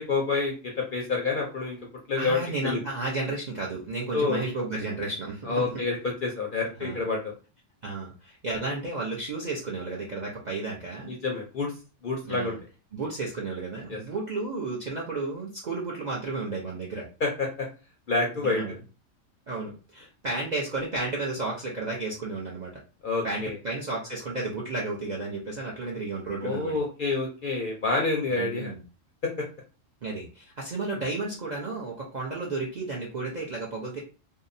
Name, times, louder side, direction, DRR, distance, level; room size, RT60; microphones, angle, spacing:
voice 1, 0.0-1.8 2.1-2.8 4.1-4.4 5.5-7.3 11.0-11.7 12.0-12.5 13.9-14.0 17.2-17.7 18.1-18.6 23.0-23.6 26.4-28.7 29.4-29.5, left 3 dB, 60° left, 0 dB, 0.5 m, -28 dB
voice 2, 2.2-5.8 6.8-7.0 7.8-11.1 12.2-12.6 12.9-17.1 18.4-18.8 19.5-22.7 23.2-26.8 28.3-28.8 30.0-34.0, right 3 dB, 55° right, -3 dB, 0.5 m, -32 dB
2.7 x 2.0 x 2.5 m, 0.34 s
omnidirectional pair, 1.4 m